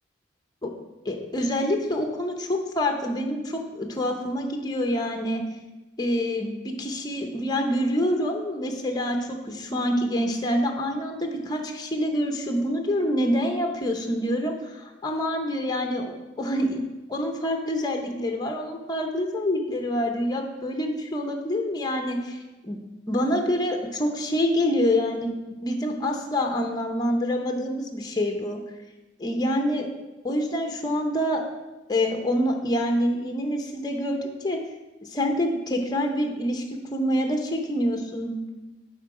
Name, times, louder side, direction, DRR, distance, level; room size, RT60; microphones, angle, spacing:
voice 1, 1.0-5.4 6.0-16.8 17.1-22.8 23.1-25.3 25.6-28.6 29.2-29.9 30.2-31.4 31.9-34.6 35.0-38.5, equal, 20° left, 3 dB, 0.6 m, -26 dB
7.8 x 3.7 x 4.8 m, 1.1 s
head